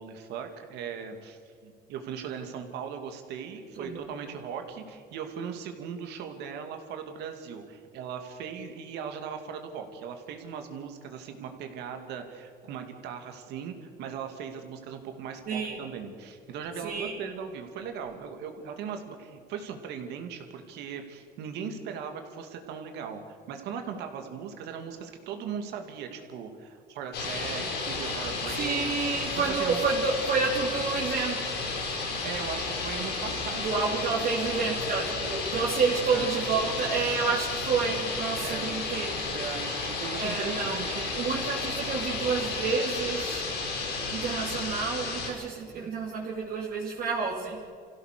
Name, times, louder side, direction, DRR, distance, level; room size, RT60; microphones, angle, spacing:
voice 1, 0.0-28.9 29.4-29.8 32.2-34.2 36.1-36.3 38.4-38.7 39.2-41.3, right 7 dB, 85° right, 5 dB, 2.6 m, -38 dB
voice 2, 15.5-15.8 16.8-17.2 28.6-31.6 33.6-39.2 40.2-40.8 41.2-43.4 44.1-47.6, right 5 dB, 55° right, -4 dB, 3.0 m, -29 dB
sound 1, 27.1-45.3, left 3 dB, 80° left, 6.4 m, -32 dB
26.5 x 16.0 x 6.8 m, 2.2 s
cardioid pair, 110°, 17 cm